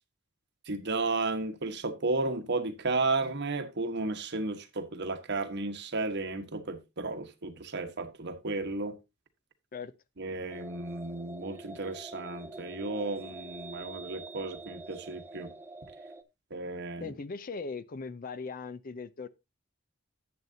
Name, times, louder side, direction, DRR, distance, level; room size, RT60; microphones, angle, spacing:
voice 1, 0.7-9.0 10.2-15.5 16.5-17.1, right 3 dB, 60° right, 1.2 m, -33 dB
sound 1, 10.5-16.2, right 3 dB, 10° right, 0.7 m, -46 dB
voice 2, 17.0-19.3, left 4 dB, 45° left, 0.5 m, -39 dB
11.0 x 8.0 x 2.7 m
head